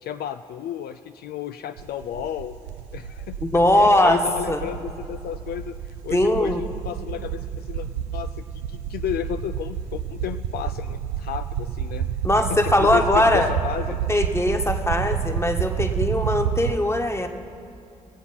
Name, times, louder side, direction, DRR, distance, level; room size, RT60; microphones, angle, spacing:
voice 1, 0.0-2.6 2.9-7.9 8.1-12.1 12.3-14.0, left 10 dB, 65° left, 10 dB, 0.4 m, -32 dB
sound 1, 1.8-16.7, right 8 dB, 85° right, 0.5 m, -30 dB
voice 2, 3.4-4.2 4.5-4.6 6.1-6.6 12.2-13.5 14.1-17.3, left 1 dB, 15° left, 5 dB, 1.3 m, -20 dB
18.0 x 8.1 x 5.8 m, 2.6 s
hypercardioid pair, 40°, 17 cm